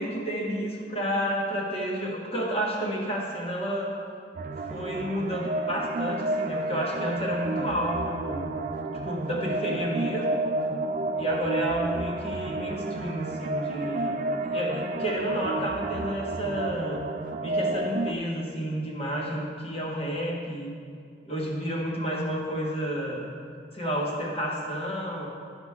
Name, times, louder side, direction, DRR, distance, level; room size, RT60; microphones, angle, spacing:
voice 1, 0.0-3.9 4.5-8.5 9.0-10.4 11.1-14.2 14.5-17.0 17.4-20.7 21.2-23.2 23.7-25.3, equal, 30° left, -3 dB, 1.4 m, -30 dB
sound 1, 4.4-18.1, right 2 dB, 45° right, 0.3 m, -31 dB
13.0 x 5.0 x 3.6 m, 2.2 s
head